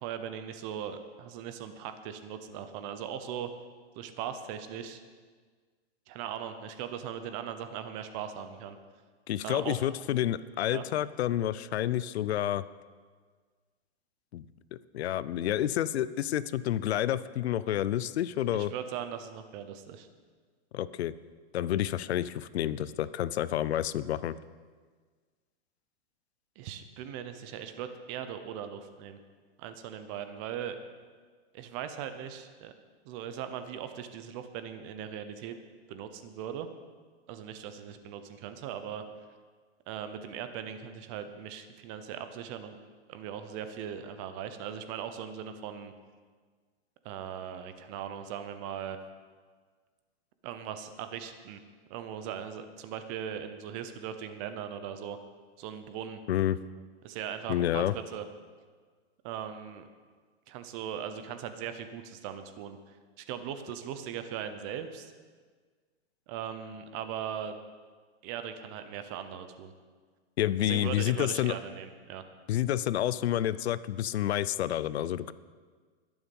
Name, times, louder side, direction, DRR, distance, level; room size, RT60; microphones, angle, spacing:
voice 1, 0.0-3.5 4.0-5.0 6.1-8.8 9.4-9.8 10.7-10.8 18.5-20.1 26.6-29.2 29.6-30.8 31.5-32.7 33.0-35.6 35.9-36.7 37.3-39.0 39.9-42.8 43.1-45.9 47.0-49.0 50.4-51.6 51.9-55.2 55.6-56.2 57.0-58.2 59.2-59.8 60.5-62.8 63.2-65.1 66.3-67.6 68.2-69.7 70.6-72.2, right 9 dB, 30° right, 9 dB, 0.8 m, -39 dB
voice 2, 9.3-12.6 14.3-14.4 14.7-18.7 20.7-21.1 21.5-24.3 56.3-56.6 57.5-57.9 70.4-71.5 72.5-75.3, left 12 dB, 70° left, 17 dB, 0.6 m, -29 dB
21.0 x 7.2 x 5.4 m, 1.5 s
hypercardioid pair, 160°, 34 cm